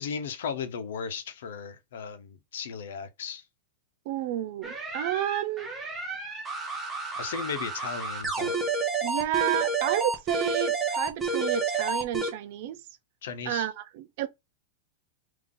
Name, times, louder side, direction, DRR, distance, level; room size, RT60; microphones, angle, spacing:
voice 1, 0.0-3.4 7.2-8.7 13.2-13.7, left 6 dB, 80° left, 0.8 m, -36 dB
voice 2, 4.1-5.7 9.0-12.8 13.5-14.3, right 12 dB, 50° right, 0.4 m, -30 dB
sound 1, 4.6-12.3, right 4 dB, 10° right, 0.8 m, -30 dB
3.9 x 2.7 x 3.7 m
supercardioid pair, 170°, 0 cm